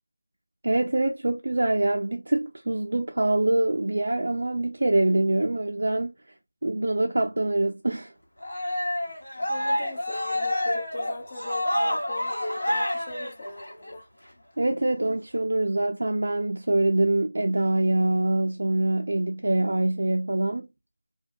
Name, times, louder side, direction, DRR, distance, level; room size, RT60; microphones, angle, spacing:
voice 1, 0.6-6.4 6.6-8.1 14.6-20.7, right 2 dB, 65° right, 0.3 m, -24 dB
Cheering, 8.4-13.9, left 1 dB, 85° left, 1.0 m, -28 dB
voice 2, 9.5-14.1, left 2 dB, 20° left, 0.5 m, -39 dB
2.2 x 2.1 x 2.5 m
figure-of-eight pair, 175°, 0 cm